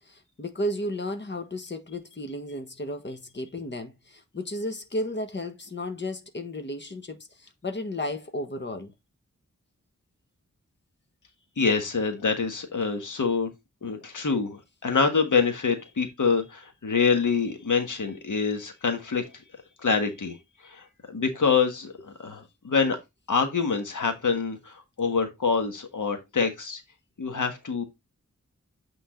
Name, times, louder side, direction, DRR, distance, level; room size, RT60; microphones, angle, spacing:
voice 1, 0.0-8.9, left 1 dB, 35° left, 1.4 m, -33 dB
voice 2, 11.6-13.5 13.8-19.3 19.8-20.4 20.6-23.0 23.3-26.8 27.2-27.8, left 5 dB, 85° left, 1.4 m, -26 dB
8.7 x 3.8 x 3.7 m
wide cardioid pair, 75°, 30 cm